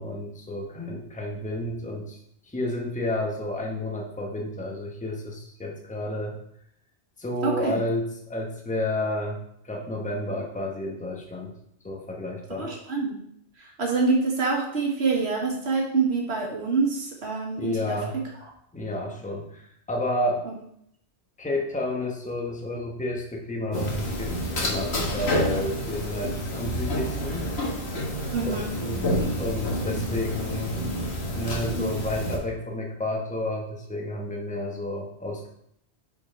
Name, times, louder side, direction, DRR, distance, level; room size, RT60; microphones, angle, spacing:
voice 1, 0.0-2.2 2.5-6.4 7.2-11.5 11.8-12.7 17.6-18.2 18.7-20.4 21.4-27.5 28.4-30.8 31.3-35.5, left 1 dB, 5° left, 0 dB, 0.9 m, -31 dB
voice 2, 7.4-7.8 12.6-13.2 13.6-18.0 18.4-18.5 20.5-20.6 28.3-28.7, right 4 dB, 70° right, 0 dB, 1.7 m, -26 dB
sound 1, 23.7-32.4, equal, 65° left, 1.6 m, -29 dB
5.6 x 4.5 x 5.1 m, 0.72 s
omnidirectional pair, 1.1 m